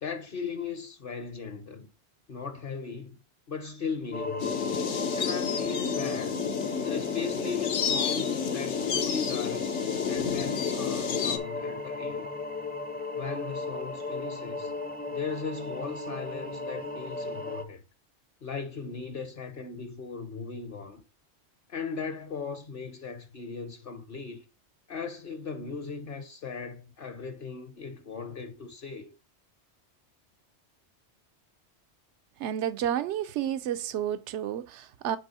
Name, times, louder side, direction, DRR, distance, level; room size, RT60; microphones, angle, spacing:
voice 1, 0.0-1.9 2.3-3.2 3.5-4.6 5.1-6.4 6.8-9.8 10.1-12.3 13.2-14.7 15.1-17.8 18.4-21.0 21.7-24.4 24.9-29.1, left 5 dB, 55° left, 0.9 m, -38 dB
sound 1, 4.1-17.6, left 3 dB, 10° left, 0.4 m, -36 dB
sound 2, 4.4-11.4, left 7 dB, 85° left, 1.2 m, -30 dB
voice 2, 32.4-35.2, right 10 dB, 80° right, 0.9 m, -31 dB
9.1 x 3.4 x 4.1 m
omnidirectional pair, 1.2 m